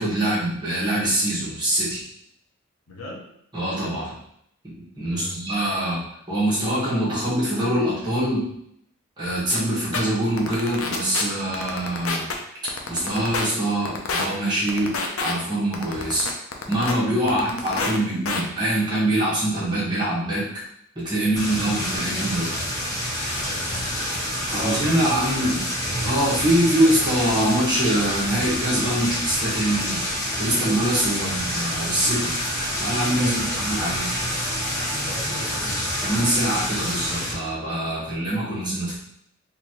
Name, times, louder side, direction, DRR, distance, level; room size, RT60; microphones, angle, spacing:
voice 1, 0.0-2.0 3.5-4.1 4.6-6.0 6.3-8.4 9.2-12.3 12.9-16.3 16.7-20.5 21.0-22.5 24.5-25.7 25.9-30.0 30.4-32.3 32.8-34.1 36.0-39.0, right 1 dB, 20° right, -8 dB, 1.4 m, -24 dB
voice 2, 2.9-3.2 5.0-5.4 17.1-17.4 23.4-23.9 24.5-25.2 31.1-31.3 33.1-33.6 35.0-35.9, equal, 85° left, -2 dB, 1.1 m, -36 dB
sound 1, 9.5-9.6 9.9-10.0 10.4-11.2 11.5-12.3 12.7-13.5 13.8-14.3 14.7-15.3 15.7-16.9 17.3-18.0 18.2-18.4, left 4 dB, 65° left, 0.6 m, -27 dB
sound 2, 21.4-37.3, equal, 15° left, 1.1 m, -27 dB
4.1 x 2.7 x 3.0 m, 0.72 s
head